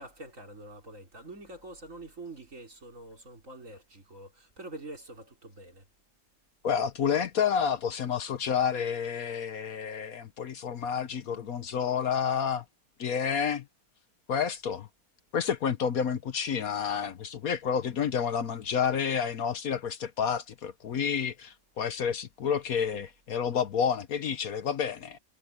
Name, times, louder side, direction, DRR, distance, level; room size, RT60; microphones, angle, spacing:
voice 1, 0.0-5.8, right 2 dB, 50° right, 4.4 m, -45 dB
voice 2, 6.6-12.6 13.0-13.6 14.3-14.9 15.3-25.2, left 7 dB, 65° left, 1.3 m, -29 dB
omnidirectional pair, 1.7 m